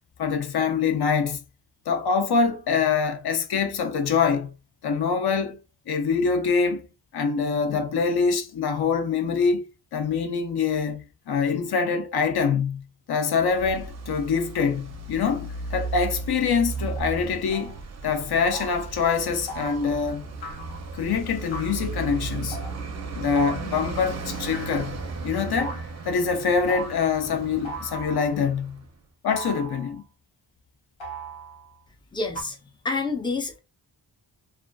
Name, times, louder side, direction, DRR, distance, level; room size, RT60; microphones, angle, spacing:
voice 1, 0.2-1.4 1.9-4.5 4.8-5.6 5.9-6.8 7.1-9.7 9.9-12.8 13.1-17.7 18.0-20.3 20.9-22.6 23.1-24.9 25.2-28.8 29.2-30.0, left 5 dB, 55° left, 0.6 m, -24 dB
Traffic noise roadway noise, 13.4-28.9, right 4 dB, 35° right, 0.5 m, -35 dB
sound 1, 16.8-16.9 17.5-17.8 18.5-18.9 19.5-19.9 20.4-20.9 21.5-21.9 22.5-22.8 23.3-23.8 24.5-25.2 25.6-26.0 26.7-27.2 27.6-28.3 29.3-30.0 31.0-31.7 32.3-32.4, right 2 dB, 75° left, 1.1 m, -38 dB
voice 2, 32.1-33.6, left 3 dB, 10° left, 0.5 m, -29 dB
2.4 x 2.3 x 2.2 m
wide cardioid pair, 80°, 45 cm